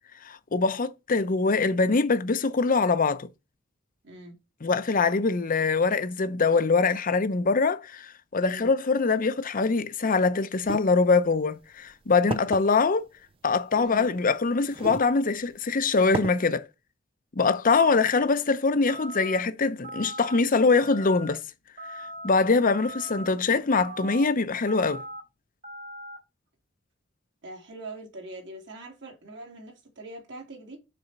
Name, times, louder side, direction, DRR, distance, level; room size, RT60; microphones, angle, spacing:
voice 1, 0.2-3.3 4.6-13.0 13.4-16.7 17.4-21.4 22.2-25.0, left 4 dB, 45° left, 0.7 m, -23 dB
voice 2, 4.0-4.3 8.5-8.7 13.7-14.0 27.4-30.8, right 2 dB, 65° right, 2.8 m, -43 dB
sound 1, 10.6-10.8 11.6-11.7 12.3-12.6 13.9-14.0 14.7-15.1 15.5-15.6 16.1-16.3, right 4 dB, 30° right, 0.3 m, -32 dB
sound 2, 18.9-19.4 19.8-20.4 20.8-21.3 21.8-22.3 22.7-23.3 23.7-24.2 24.7-25.2 25.6-26.2, right 1 dB, 50° right, 2.4 m, -40 dB
6.8 x 4.2 x 5.8 m
head